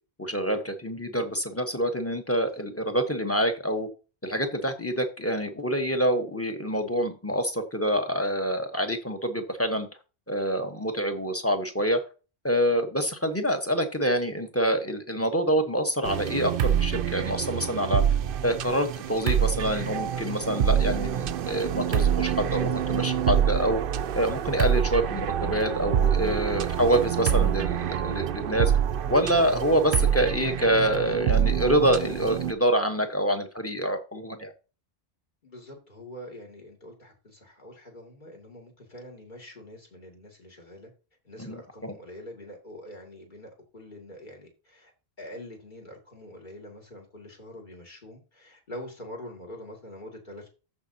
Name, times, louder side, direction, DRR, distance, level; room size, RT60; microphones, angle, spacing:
voice 1, 0.2-3.9 4.2-9.9 10.3-12.0 12.4-18.0 18.4-23.8 24.1-28.7 29.1-34.5 41.4-41.9, equal, 15° left, 5 dB, 1.1 m, -26 dB
sound 1, 16.0-32.5, right 9 dB, 65° right, 0.7 m, -26 dB
voice 2, 35.4-40.9 41.2-44.9 45.2-50.5, left 1 dB, 50° left, 0 dB, 2.5 m, -45 dB
14.0 x 5.1 x 2.8 m, 0.33 s
omnidirectional pair, 1.0 m